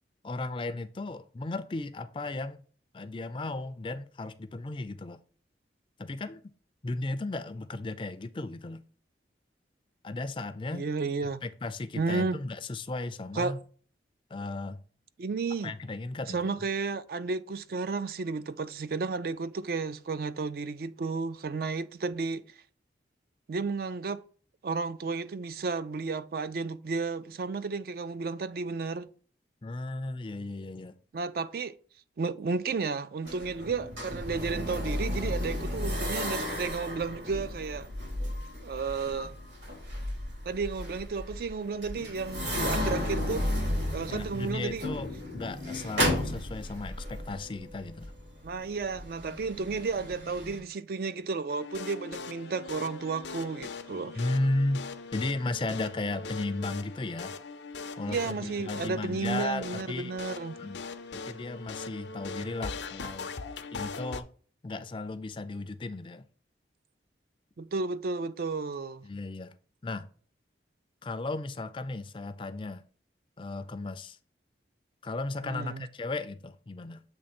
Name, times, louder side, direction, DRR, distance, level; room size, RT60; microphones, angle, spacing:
voice 1, 0.2-2.6 2.9-5.2 6.0-6.5 6.8-8.8 10.0-10.9 11.2-13.6 14.3-14.8 15.6-16.7 29.6-31.0 44.1-48.1 54.1-54.8 55.1-57.3 58.0-60.1 60.6-60.8 61.1-63.3 63.7-64.3 64.6-66.2 69.0-69.5 69.8-70.1 71.0-72.8 73.4-74.2 75.0-77.0, left 2 dB, 25° left, 0.4 m, -35 dB
voice 2, 10.7-11.4 12.0-12.4 13.4-13.6 15.2-15.7 16.3-22.4 23.5-24.2 24.6-29.1 31.1-31.8 32.2-37.9 38.6-39.3 40.5-43.5 43.9-44.9 48.4-54.2 58.1-60.6 67.6-69.0 75.4-75.9, right 4 dB, 55° right, 0.3 m, -32 dB
sound 1, 33.2-50.6, left 1 dB, 80° right, 3.4 m, -34 dB
sound 2, 51.5-64.2, left 4 dB, 75° left, 0.5 m, -40 dB
7.6 x 3.1 x 4.2 m
head